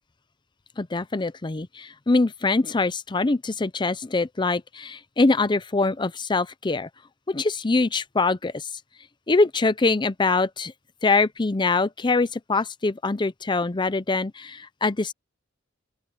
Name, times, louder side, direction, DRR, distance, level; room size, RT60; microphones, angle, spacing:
voice 1, 0.8-6.9 7.3-8.7 9.3-10.7 11.0-15.1, left 3 dB, 25° left, 0.6 m, -23 dB
open air
head